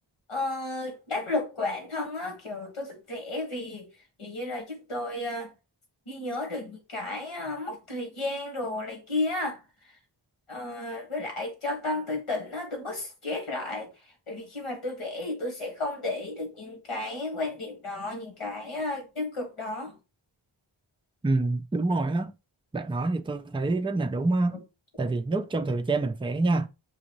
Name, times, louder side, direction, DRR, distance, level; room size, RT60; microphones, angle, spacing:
voice 1, 0.3-3.9 4.2-5.5 6.1-9.9 10.5-20.0, left 2 dB, 80° left, 1.6 m, -33 dB
voice 2, 21.2-22.3 22.7-24.6 25.0-26.7, right 2 dB, 10° right, 0.3 m, -26 dB
6.1 x 2.6 x 2.9 m
wide cardioid pair, 40°, 50 cm